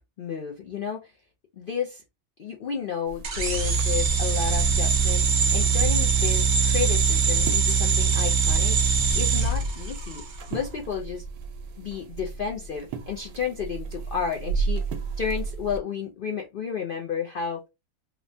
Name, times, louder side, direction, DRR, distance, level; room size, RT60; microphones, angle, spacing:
voice 1, 0.2-1.1 1.6-2.0 2.4-10.2 10.5-11.2 11.8-14.8 15.2-17.6, left 7 dB, 75° left, 0 dB, 0.5 m, -32 dB
sound 1, 3.1-15.8, right 4 dB, 85° right, 1.0 m, -36 dB
sound 2, 3.2-10.4, right 5 dB, 65° right, 0.4 m, -22 dB
3.0 x 2.1 x 2.6 m, 0.24 s
omnidirectional pair, 1.5 m